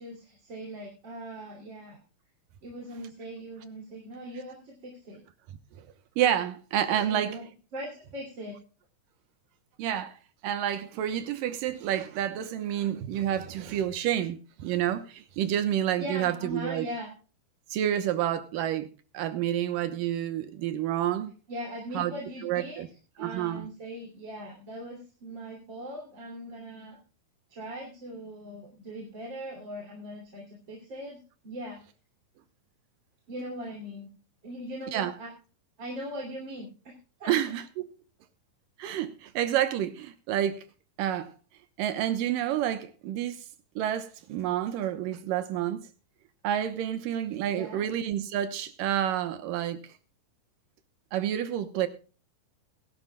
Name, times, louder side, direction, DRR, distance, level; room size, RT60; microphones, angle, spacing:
voice 1, 0.0-2.0 2.6-5.2 7.0-7.5 7.7-8.6 16.0-17.1 21.5-22.8 23.2-27.0 27.5-31.8 33.3-34.1 34.4-35.3 35.8-36.9 37.2-37.4 47.5-47.9, equal, 35° right, 3.2 m, -40 dB
voice 2, 6.2-7.4 9.8-10.2 10.4-16.9 17.7-18.9 19.1-21.3 21.9-22.1 22.4-22.9 23.2-23.7 34.9-35.1 37.3-37.9 38.8-40.6 41.0-41.3 41.8-43.5 43.8-45.9 46.4-49.9 51.1-51.9, right 11 dB, 75° right, 2.6 m, -29 dB
21.0 x 12.0 x 2.3 m
omnidirectional pair, 4.1 m